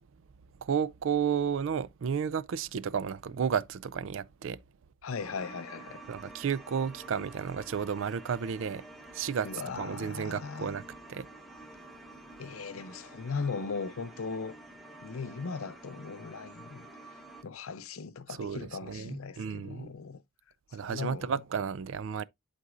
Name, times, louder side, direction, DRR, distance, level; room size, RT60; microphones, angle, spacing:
voice 1, 0.6-4.6 6.1-8.8 9.1-9.5 9.7-10.8 11.1-11.3 18.4-19.9 20.7-22.2, right 7 dB, 65° right, 0.4 m, -32 dB
voice 2, 5.0-6.0 9.4-10.8 12.4-14.6 15.0-16.9 17.4-20.2 20.8-21.4, left 5 dB, 85° left, 0.6 m, -38 dB
sound 1, 5.2-17.4, right 2 dB, ahead, 1.1 m, -49 dB
11.0 x 4.0 x 2.5 m
head